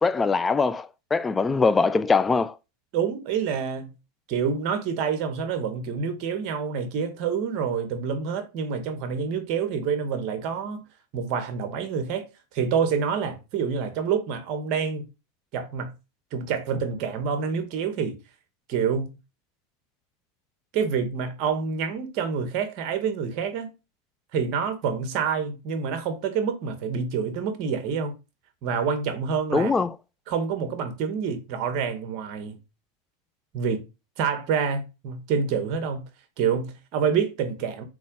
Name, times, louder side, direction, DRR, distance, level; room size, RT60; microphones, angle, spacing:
voice 1, 0.0-2.6 29.5-30.0, left 4 dB, 15° left, 0.5 m, -22 dB
voice 2, 2.9-3.9 4.3-10.8 11.1-12.3 12.5-15.0 15.5-15.9 16.3-18.2 18.7-19.1 20.7-23.7 24.3-28.1 28.6-29.7 30.3-32.6 33.5-33.8 34.2-36.0 36.4-37.8, right 6 dB, 50° right, 2.1 m, -27 dB
6.3 x 5.1 x 5.6 m
supercardioid pair, 125°, 0 cm